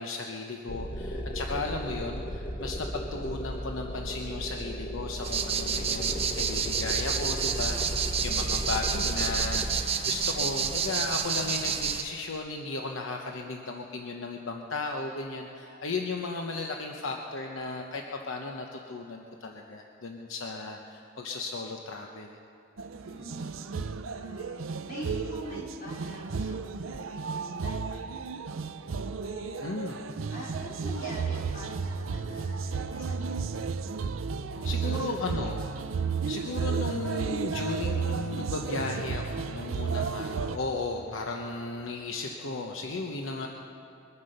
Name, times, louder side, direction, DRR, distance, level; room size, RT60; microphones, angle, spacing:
voice 1, 0.0-7.8 8.2-22.4 29.6-30.0 34.6-35.7 36.3-43.5, left 3 dB, 80° left, 2 dB, 0.9 m, -35 dB
sound 1, 0.7-9.8, equal, 25° left, 0.8 m, -35 dB
sound 2, 5.2-12.0, right 6 dB, 30° right, 0.7 m, -29 dB
voice 2, 7.0-7.8 22.9-28.4 29.2-29.8 30.3-33.5 34.5-35.4, equal, 45° left, -5 dB, 4.5 m, -45 dB
sound 3, 22.8-40.6, right 5 dB, 90° right, 0.6 m, -33 dB
22.5 x 9.6 x 6.6 m, 2.8 s
head